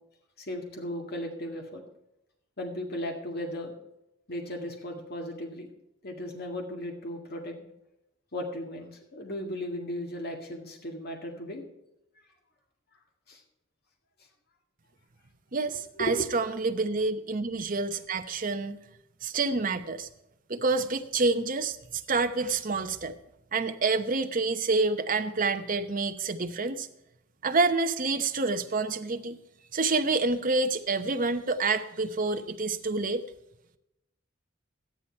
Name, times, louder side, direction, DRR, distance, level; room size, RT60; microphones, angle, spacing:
voice 1, 0.4-1.8 2.6-3.7 4.3-5.7 6.0-7.6 8.3-11.6 13.3-13.4 16.0-16.3, equal, 50° left, 2 dB, 1.9 m, -36 dB
voice 2, 15.5-18.8 19.2-20.1 20.5-23.1 23.5-26.9 27.4-29.4 29.7-33.2, right 3 dB, 40° right, 7 dB, 0.9 m, -28 dB
13.0 x 10.0 x 4.5 m, 0.87 s
head